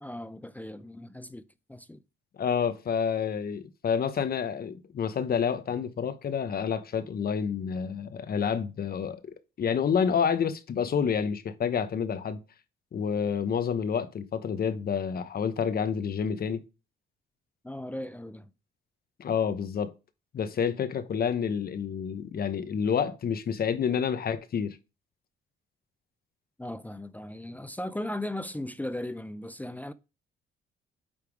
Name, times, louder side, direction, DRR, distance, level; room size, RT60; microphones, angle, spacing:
voice 1, 0.0-2.0 17.6-18.5 26.6-29.9, left 1 dB, 10° left, 0.4 m, -37 dB
voice 2, 2.4-12.4 12.9-16.6 19.2-19.9 20.3-24.8, left 7 dB, 50° left, 0.9 m, -29 dB
8.8 x 3.5 x 4.7 m
cardioid pair, 90°, 20 cm